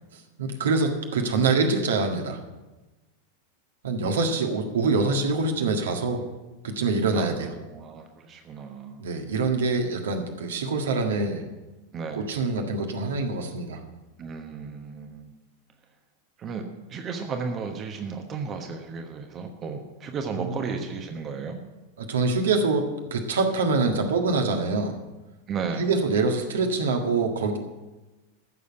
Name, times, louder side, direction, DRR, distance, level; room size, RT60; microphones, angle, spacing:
voice 1, 0.4-2.4 3.8-6.2 6.6-7.5 9.0-11.4 12.2-13.8 20.4-20.6 22.0-24.9 25.8-27.6, right 3 dB, 65° right, 3 dB, 1.7 m, -25 dB
voice 2, 7.1-9.0 11.9-12.3 14.2-15.3 16.4-16.6 16.9-21.6 25.5-25.9, right 5 dB, 30° right, 5 dB, 1.2 m, -34 dB
14.5 x 6.9 x 7.9 m, 1.1 s
figure-of-eight pair, 90°, 0 cm